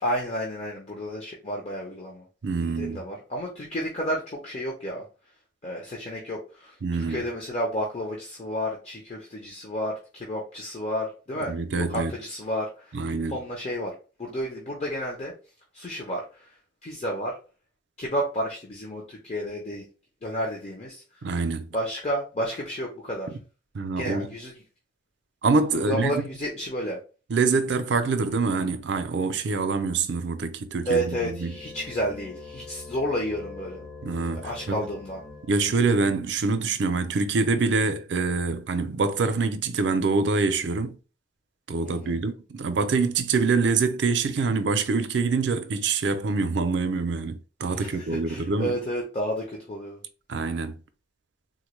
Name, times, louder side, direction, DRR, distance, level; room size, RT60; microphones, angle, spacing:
voice 1, 0.0-2.2 2.6-5.0 5.6-6.8 7.1-13.0 13.3-13.9 14.2-15.3 15.7-16.5 16.8-17.4 18.0-19.8 20.2-21.0 21.7-23.3 24.0-24.5 25.7-27.0 30.9-33.9 34.4-35.2 41.8-42.2 47.7-50.0, equal, 35° left, 0.7 m, -31 dB
voice 2, 2.4-3.0 6.8-7.2 11.5-12.1 12.9-13.4 21.2-21.7 23.7-24.3 25.4-26.2 27.3-31.6 34.0-34.9 35.5-41.0 41.7-48.7 50.3-50.8, right 4 dB, 70° right, 0.5 m, -25 dB
sound 1, 30.8-35.9, left 3 dB, 70° left, 1.4 m, -43 dB
3.8 x 2.2 x 3.1 m
head